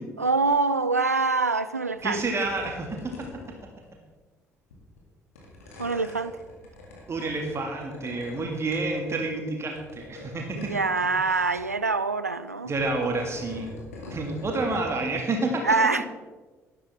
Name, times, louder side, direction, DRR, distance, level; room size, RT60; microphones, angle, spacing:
voice 1, 0.0-2.2 5.8-6.3 10.5-12.7 15.6-16.1, right 3 dB, 90° right, 0.4 m, -25 dB
sound 1, 2.0-2.2 2.4-3.9 4.7-5.0 5.4-8.4 8.7-9.4 9.7-11.0 11.3-11.6 12.6-14.9, left 2 dB, 75° left, 2.1 m, -44 dB
voice 2, 2.0-3.3 5.8-6.0 7.1-10.7 12.7-13.7 14.1-15.7, right 2 dB, 35° right, 2.0 m, -29 dB
12.0 x 11.0 x 3.5 m
figure-of-eight pair, 50°, 8 cm